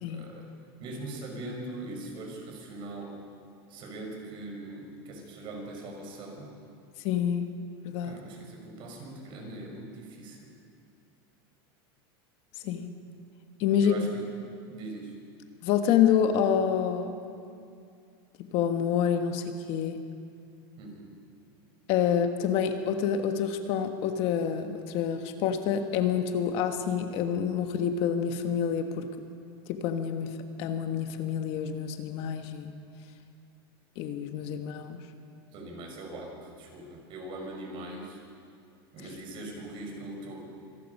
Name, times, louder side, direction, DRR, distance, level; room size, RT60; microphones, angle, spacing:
voice 1, 0.1-0.5 0.8-3.2 3.7-6.5 8.0-10.5 13.8-14.2 14.7-15.1 20.8-21.0 35.5-38.2 38.9-40.4, right 2 dB, 40° right, 1 dB, 5.8 m, -41 dB
voice 2, 7.0-7.5 7.8-8.1 12.6-12.9 13.6-13.9 15.6-17.2 18.5-20.0 21.9-29.1 29.7-30.3 30.6-32.7 34.0-35.0, left 8 dB, 50° left, 6 dB, 1.4 m, -27 dB
26.0 x 19.0 x 5.5 m, 2.5 s
supercardioid pair, 140°, 13 cm